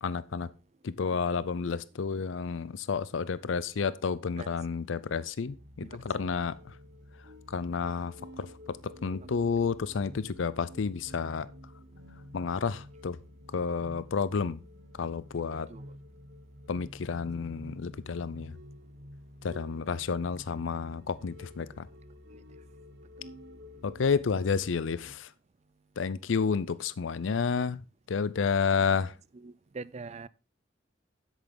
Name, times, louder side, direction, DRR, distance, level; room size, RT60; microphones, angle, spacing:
voice 1, 0.0-0.5 0.8-6.6 7.5-11.5 12.3-13.2 13.5-14.6 15.0-15.7 16.7-18.6 19.4-21.9 23.8-25.3 26.0-27.8 28.1-29.2, left 5 dB, 75° left, 0.5 m, -30 dB
sound 1, 5.5-25.1, left 1 dB, 60° right, 1.2 m, -50 dB
voice 2, 5.8-6.3 15.7-15.9 29.3-30.3, right 4 dB, 35° right, 0.4 m, -43 dB
10.5 x 8.1 x 3.8 m
head